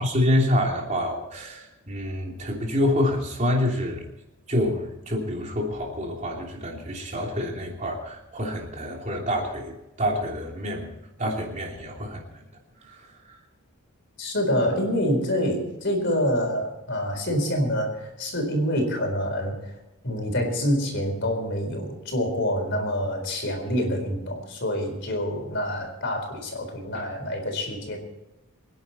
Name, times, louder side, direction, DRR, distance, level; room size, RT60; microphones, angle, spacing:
voice 1, 0.0-4.0 4.5-10.9 11.2-12.2 12.8-13.4 26.9-27.1, left 1 dB, 35° right, 0 dB, 3.0 m, -27 dB
voice 2, 14.2-19.8 20.0-28.0, equal, 55° left, 3 dB, 4.2 m, -26 dB
25.5 x 10.5 x 4.3 m, 0.96 s
head